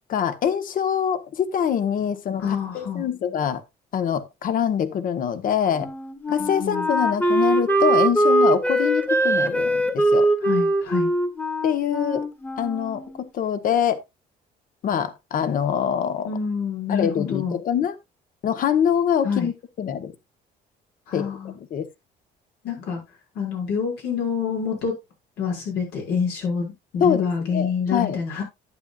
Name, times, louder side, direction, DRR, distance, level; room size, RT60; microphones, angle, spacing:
voice 1, 0.1-3.6 3.9-5.9 6.3-10.3 11.6-12.3 12.6-14.0 14.8-16.3 16.9-17.9 18.4-20.1 21.1-21.3 21.7-21.9 27.0-28.2, left 8 dB, 55° left, 1.2 m, -24 dB
voice 2, 2.4-3.1 6.4-6.9 10.4-11.1 16.2-17.6 19.2-19.5 21.1-21.6 22.6-23.0 23.3-24.9 25.4-28.4, left 6 dB, 85° left, 6.1 m, -27 dB
Wind instrument woodwind instrument, 5.8-13.3, right 1 dB, 10° left, 1.4 m, -22 dB
11.5 x 8.9 x 2.5 m
cardioid pair, 110°, 17 cm